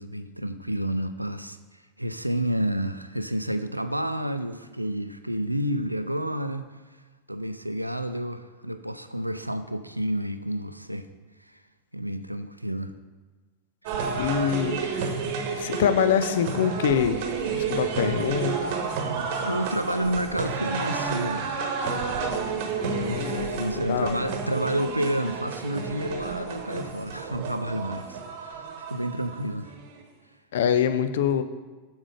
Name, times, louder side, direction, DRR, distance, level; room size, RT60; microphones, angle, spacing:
voice 1, 0.0-1.6 2.0-6.7 7.3-11.1 11.5-11.6 11.9-12.9 13.9-14.0 19.4-21.5 22.9-29.8, right 1 dB, 90° right, 10 dB, 0.5 m, -30 dB
sound 1, 13.9-29.9, right 5 dB, 45° right, 1.2 m, -31 dB
voice 2, 14.2-15.0 15.6-17.2 17.5-18.6 22.8-23.4 23.7-24.2 30.5-31.4, left 8 dB, 60° left, 11 dB, 0.5 m, -25 dB
7.4 x 6.4 x 5.0 m, 1.3 s
figure-of-eight pair, 90°, 0 cm